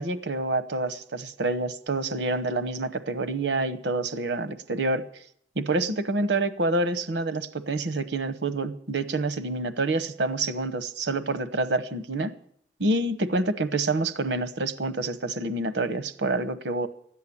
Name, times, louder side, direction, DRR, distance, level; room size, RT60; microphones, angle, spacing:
voice 1, 0.0-5.0 5.6-12.3 12.8-16.9, right 2 dB, 80° right, 13 dB, 1.0 m, -27 dB
14.0 x 10.5 x 8.5 m, 0.65 s
head